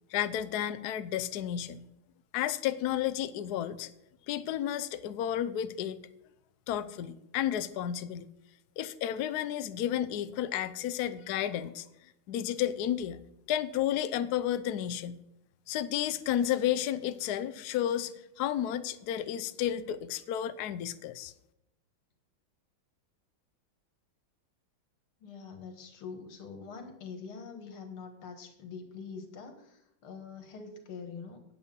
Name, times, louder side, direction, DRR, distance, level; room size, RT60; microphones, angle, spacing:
voice 1, 0.1-1.8 2.3-3.9 4.3-6.0 6.7-8.3 8.8-11.9 12.3-13.2 13.5-15.2 15.7-21.3, left 11 dB, 70° left, 12 dB, 0.9 m, -32 dB
voice 2, 25.2-31.4, left 5 dB, 85° left, 6 dB, 2.5 m, -44 dB
9.6 x 8.3 x 5.4 m, 0.83 s
omnidirectional pair, 2.3 m